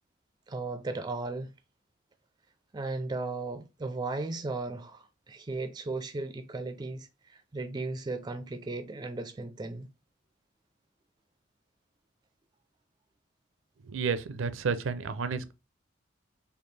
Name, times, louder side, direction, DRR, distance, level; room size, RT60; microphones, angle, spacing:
voice 1, 0.5-1.5 2.7-9.9, right 3 dB, 20° right, 0.3 m, -36 dB
voice 2, 13.8-15.5, right 5 dB, 80° right, 0.5 m, -31 dB
4.2 x 2.8 x 3.2 m
head